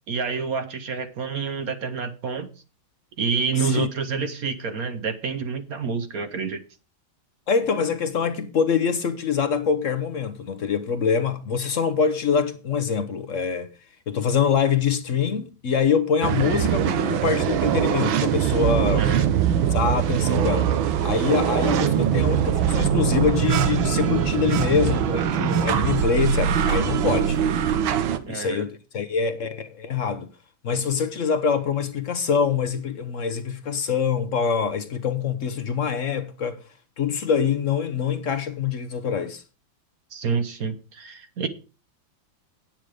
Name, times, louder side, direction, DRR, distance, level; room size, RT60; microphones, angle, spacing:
voice 1, 0.1-2.5 3.2-6.6 19.0-19.2 28.3-28.6 40.1-41.5, right 5 dB, 55° right, 1.3 m, -28 dB
voice 2, 3.6-3.9 7.5-13.7 14.1-19.1 19.7-20.7 21.0-27.4 28.3-30.3 30.6-36.6 37.0-39.4, left 6 dB, 50° left, 1.0 m, -24 dB
sound 1, 16.2-28.2, right 9 dB, 85° right, 1.7 m, -22 dB
9.2 x 8.9 x 4.9 m
omnidirectional pair, 2.1 m